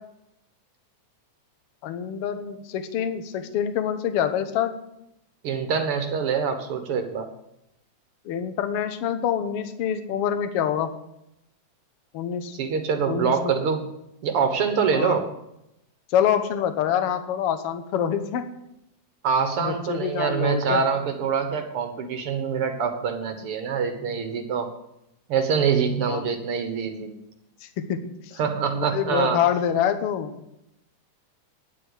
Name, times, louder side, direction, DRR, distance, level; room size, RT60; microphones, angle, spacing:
voice 1, 1.8-4.7 8.2-10.9 12.1-12.6 13.1-13.5 14.9-15.2 16.1-18.4 19.6-20.8 26.1-26.2 27.8-28.0 28.7-30.3, left 9 dB, 60° left, 9 dB, 1.7 m, -26 dB
voice 2, 5.4-7.3 12.5-13.9 14.2-15.3 19.2-24.7 25.3-27.1 28.4-29.4, right 6 dB, 55° right, 6 dB, 2.0 m, -25 dB
10.5 x 7.7 x 9.7 m, 0.83 s
omnidirectional pair, 3.4 m